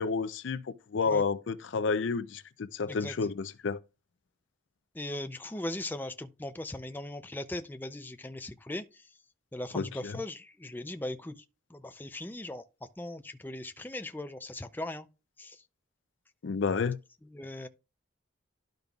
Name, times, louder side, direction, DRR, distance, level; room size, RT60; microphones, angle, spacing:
voice 1, 0.0-3.8 9.7-10.2 16.4-17.0, left 4 dB, 75° left, 0.5 m, -30 dB
voice 2, 4.9-9.0 9.5-11.4 11.7-12.6 13.0-15.1 15.4-15.6 17.3-17.7, left 1 dB, 10° left, 0.4 m, -39 dB
12.0 x 5.3 x 2.3 m
head